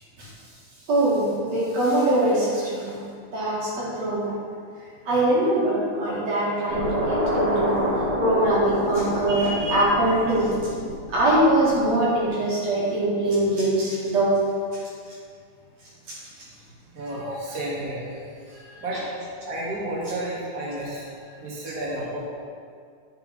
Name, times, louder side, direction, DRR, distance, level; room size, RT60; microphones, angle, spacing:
voice 1, 0.9-3.0 3.3-4.2 5.1-7.8 8.2-10.5 11.1-14.4 16.1-16.2, right 1 dB, 60° right, -7 dB, 3.1 m, -22 dB
sound 1, 6.7-12.0, equal, 85° right, 3.5 m, -28 dB
voice 2, 16.9-22.3, right 1 dB, 35° right, -7 dB, 2.1 m, -32 dB
10.0 x 5.8 x 5.3 m, 2.2 s
omnidirectional pair, 3.6 m